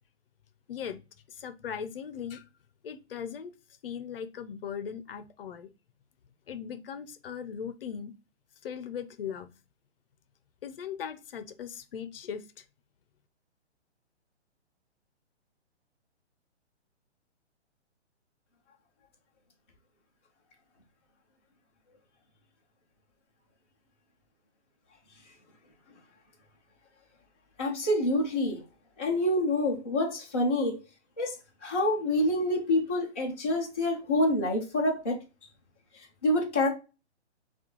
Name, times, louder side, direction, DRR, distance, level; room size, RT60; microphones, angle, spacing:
voice 1, 1.3-2.5 2.8-3.5 3.8-5.7 6.5-8.1 8.6-9.5 10.6-12.6, left 7 dB, 55° left, 0.6 m, -38 dB
voice 2, 27.6-28.6 29.0-30.8 31.2-31.4 31.6-35.2 35.9-36.7, left 1 dB, 10° left, 0.3 m, -27 dB
5.8 x 2.4 x 2.9 m
hypercardioid pair, 150°, 34 cm